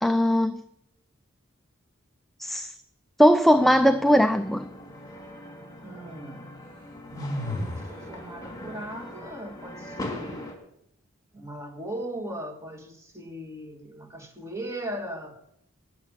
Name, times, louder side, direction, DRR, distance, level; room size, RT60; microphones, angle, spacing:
voice 1, 0.0-0.6 2.4-2.7 3.2-4.7, equal, ahead, 0.4 m, -19 dB
sound 1, 3.5-10.6, left 1 dB, 20° left, 2.5 m, -41 dB
voice 2, 5.8-6.4 7.9-10.4 11.3-15.3, right 1 dB, 15° right, 1.9 m, -38 dB
sound 2, 7.1-8.0, left 1 dB, 50° right, 3.6 m, -31 dB
12.5 x 6.9 x 8.8 m
head